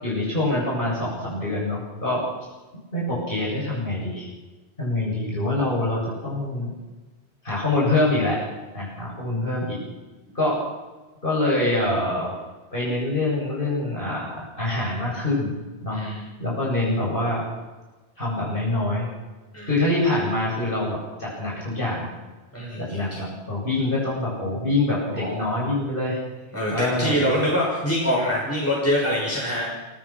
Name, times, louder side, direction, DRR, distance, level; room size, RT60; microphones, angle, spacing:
voice 1, 0.0-2.2 2.9-4.3 4.8-6.7 7.4-8.4 8.7-9.8 10.3-10.6 11.2-12.3 12.7-15.5 15.8-16.0 16.4-17.4 18.2-19.1 19.7-22.1 22.8-26.2 26.7-27.2, left 2 dB, 45° left, -5 dB, 8.1 m, -25 dB
voice 2, 15.9-16.2 19.5-19.7 22.5-23.2 25.1-25.5 26.5-29.7, equal, 10° left, -4 dB, 6.3 m, -25 dB
29.0 x 17.0 x 6.1 m, 1.2 s
omnidirectional pair, 1.2 m